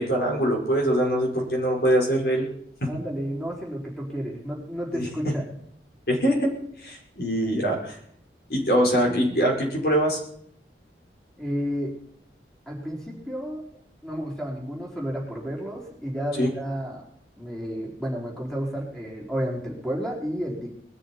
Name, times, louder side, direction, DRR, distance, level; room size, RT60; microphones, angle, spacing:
voice 1, 0.0-2.4 2.8-2.9 4.9-5.3 6.1-6.5 6.8-8.0 8.5-10.2 16.4-16.5, equal, 60° left, 0 dB, 5.1 m, -23 dB
voice 2, 2.9-5.6 11.4-11.9 12.7-13.6 14.0-17.0 17.4-20.7, equal, 5° left, -3 dB, 4.3 m, -31 dB
20.5 x 13.0 x 4.5 m, 0.70 s
head